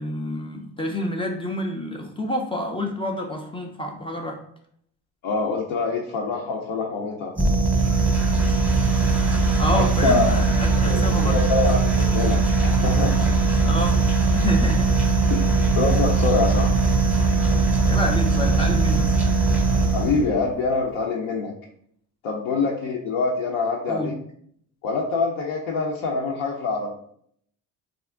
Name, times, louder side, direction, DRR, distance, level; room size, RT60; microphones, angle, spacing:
voice 1, 0.0-4.4 9.6-11.3 13.6-14.0 14.3-14.9 17.9-19.1 23.9-24.1, left 1 dB, 15° left, 1 dB, 0.3 m, -28 dB
voice 2, 5.2-7.3 9.7-10.4 10.8-13.3 15.3-15.5 15.8-16.8 19.9-21.5 22.2-24.1 24.8-26.9, left 4 dB, 65° left, -2 dB, 0.6 m, -25 dB
sound 1, 7.4-20.3, right 3 dB, 5° right, 0.8 m, -20 dB
2.4 x 2.0 x 3.4 m, 0.67 s
hypercardioid pair, 60°, 44 cm